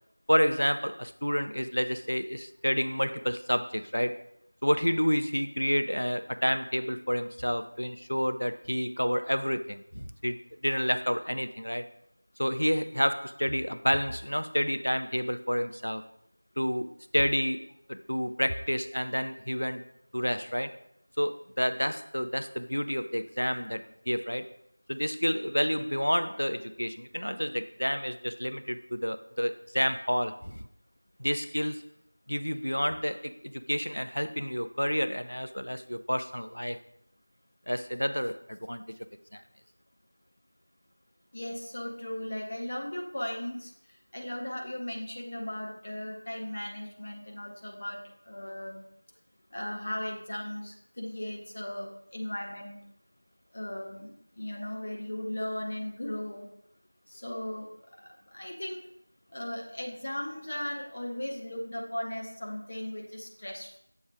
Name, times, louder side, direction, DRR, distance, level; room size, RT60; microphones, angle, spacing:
voice 1, 0.3-4.2 4.6-11.9 12.4-16.0 16.6-19.9 20.1-20.8 21.2-24.5 24.9-30.6 31.2-31.9 32.3-36.8 37.7-38.8 39.3-39.4, equal, 75° left, 11 dB, 0.5 m, -29 dB
voice 2, 41.3-43.7 44.1-48.0 48.3-48.8 49.5-52.8 53.5-56.5 57.1-57.7 58.0-58.8 59.3-63.8, left 1 dB, 20° left, 0 dB, 0.5 m, -37 dB
7.1 x 3.6 x 4.6 m, 0.75 s
figure-of-eight pair, 175°, 0 cm